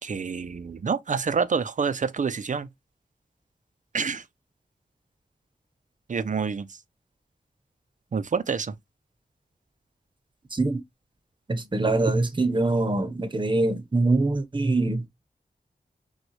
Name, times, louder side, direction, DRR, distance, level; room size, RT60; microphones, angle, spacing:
voice 1, 0.0-2.7 3.9-4.2 6.1-6.8 8.1-8.8, right 5 dB, 50° right, 0.5 m, -27 dB
voice 2, 11.5-15.1, right 2 dB, 30° right, 0.9 m, -24 dB
6.1 x 2.3 x 3.0 m
wide cardioid pair, 85°, 17 cm